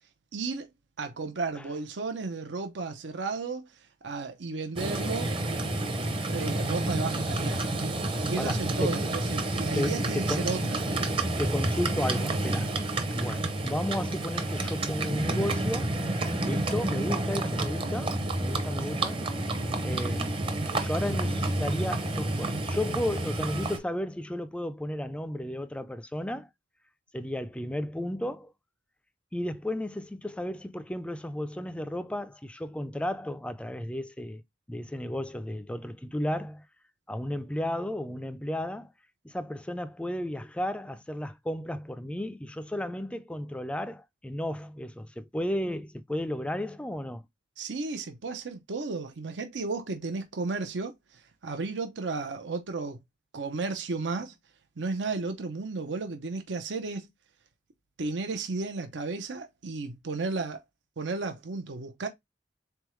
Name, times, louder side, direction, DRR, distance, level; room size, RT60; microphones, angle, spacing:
voice 1, 0.3-0.7 1.0-3.7 4.0-5.3 6.2-8.0 8.2-10.8 47.6-53.0 53.3-54.4 54.8-57.1 58.0-60.6 61.0-62.1, right 3 dB, 90° right, 0.7 m, -34 dB
Livestock farm animals working animals, 4.8-23.8, right 2 dB, 30° right, 0.7 m, -29 dB
voice 2, 8.4-9.1 9.7-10.5 11.4-12.7 13.1-16.0 16.4-19.2 19.8-20.4 20.8-26.5 27.1-28.5 29.3-34.4 34.7-36.6 37.1-38.9 39.2-47.2, left 1 dB, 5° left, 0.3 m, -33 dB
3.9 x 3.5 x 3.0 m
head